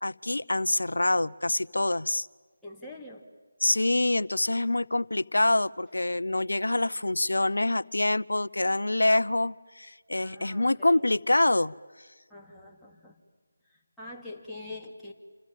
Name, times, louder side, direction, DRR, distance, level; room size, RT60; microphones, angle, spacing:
voice 1, 0.0-2.3 3.6-11.7, left 2 dB, 80° left, 18 dB, 0.7 m, -26 dB
voice 2, 2.6-3.2 10.2-11.0 12.3-13.2 13.7-15.1, left 2 dB, ahead, -6 dB, 2.9 m, -44 dB
28.5 x 28.0 x 7.5 m, 1.5 s
figure-of-eight pair, 160°, 0 cm